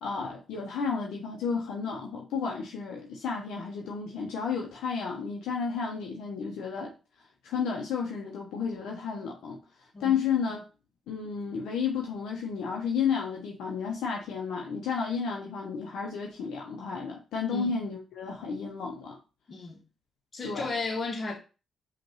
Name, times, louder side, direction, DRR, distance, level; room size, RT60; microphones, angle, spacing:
voice 1, 0.0-6.9 7.4-9.6 10.0-10.6 11.1-19.2 20.4-20.7, left 6 dB, 75° left, 0.8 m, -32 dB
voice 2, 19.5-19.8 20.3-21.4, left 3 dB, 45° left, 1.2 m, -34 dB
5.2 x 2.6 x 3.1 m
supercardioid pair, 50°, 0 cm